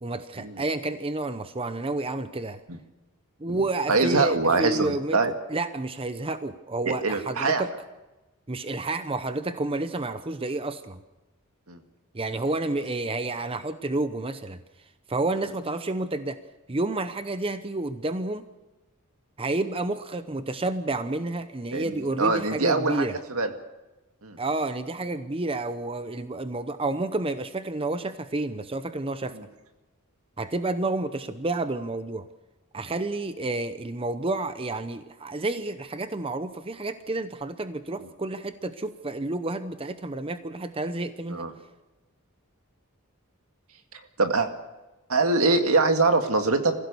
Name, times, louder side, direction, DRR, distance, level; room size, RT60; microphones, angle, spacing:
voice 1, 0.0-2.6 3.4-5.2 5.5-7.7 8.5-11.0 12.1-14.6 15.1-16.4 16.7-18.5 19.4-23.2 24.4-29.4 30.4-32.3 32.7-41.5, right 2 dB, 25° right, 10 dB, 0.8 m, -30 dB
voice 2, 3.9-5.3 6.8-7.6 11.7-11.8 21.7-21.9 22.2-23.5 24.2-24.4 41.3-41.5 44.2-44.5 45.1-46.7, right 3 dB, 85° right, 5 dB, 2.0 m, -23 dB
25.0 x 16.0 x 6.9 m, 1.1 s
head